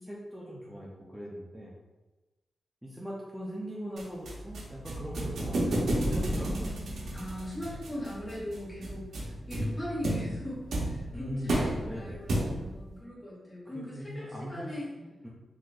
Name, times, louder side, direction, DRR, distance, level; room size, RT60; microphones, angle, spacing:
voice 1, 0.1-1.7 2.8-5.6 5.9-6.8 11.1-12.3 13.7-14.7 15.0-15.3, equal, 5° right, -5 dB, 0.4 m, -40 dB
sound 1, 4.0-12.8, right 1 dB, 85° right, 0.7 m, -32 dB
voice 2, 7.1-14.8, left 1 dB, 15° left, -9 dB, 1.1 m, -40 dB
4.2 x 2.5 x 2.3 m, 1.1 s
wide cardioid pair, 150°, 0 cm